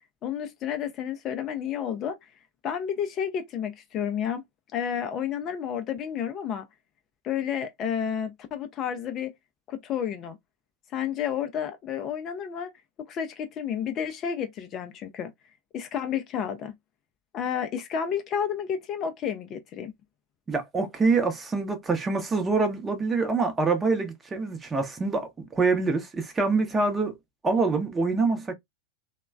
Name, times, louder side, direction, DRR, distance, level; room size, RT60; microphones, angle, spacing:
voice 1, 0.2-2.2 2.6-4.4 4.7-6.7 7.2-9.3 9.7-10.4 10.9-12.7 13.0-15.3 15.7-16.7 17.3-19.9, left 8 dB, 30° left, 0.4 m, -31 dB
voice 2, 20.5-27.1 27.4-28.5, right 4 dB, 15° right, 0.7 m, -25 dB
3.0 x 2.1 x 2.3 m
figure-of-eight pair, 90°, 0 cm